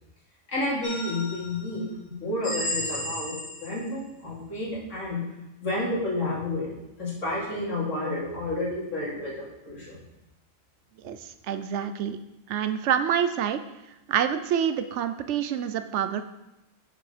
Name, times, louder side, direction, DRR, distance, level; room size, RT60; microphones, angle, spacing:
voice 1, 0.5-5.2 5.6-6.7 7.0-9.3 9.6-10.0, left 2 dB, 85° left, -6 dB, 3.0 m, -30 dB
sound 1, 0.8-1.6 2.4-3.9, left 1 dB, 25° left, 2.7 m, -33 dB
voice 2, 11.5-12.2 12.5-13.6 14.1-16.2, right 9 dB, 75° right, 10 dB, 0.9 m, -26 dB
6.9 x 5.9 x 5.1 m, 0.94 s
omnidirectional pair, 1.3 m